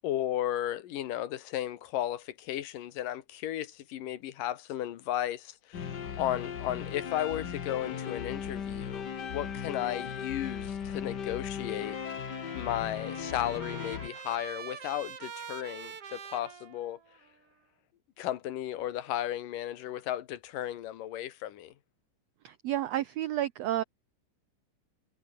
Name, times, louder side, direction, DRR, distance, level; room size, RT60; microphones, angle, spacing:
voice 1, 0.0-12.0 12.5-17.0 18.2-21.7, left 12 dB, 75° left, 2.9 m, -34 dB
sound 1, 5.7-14.1, left 7 dB, 45° left, 1.4 m, -37 dB
Trumpet, 11.7-17.3, right 7 dB, 45° right, 2.9 m, -45 dB
voice 2, 22.4-23.8, right 13 dB, 80° right, 1.4 m, -31 dB
omnidirectional pair, 3.9 m